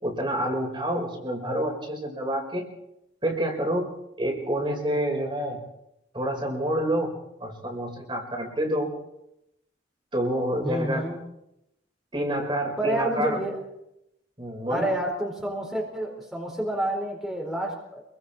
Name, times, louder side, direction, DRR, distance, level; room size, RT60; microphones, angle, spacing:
voice 1, 0.0-2.6 3.2-5.6 6.1-7.1 7.4-8.9 10.1-11.0 12.1-13.4 14.4-14.9, right 1 dB, 25° right, 1 dB, 5.1 m, -28 dB
voice 2, 10.6-11.2 12.8-13.6 14.7-18.0, right 1 dB, ahead, -2 dB, 4.7 m, -29 dB
28.0 x 23.0 x 4.5 m, 0.81 s
head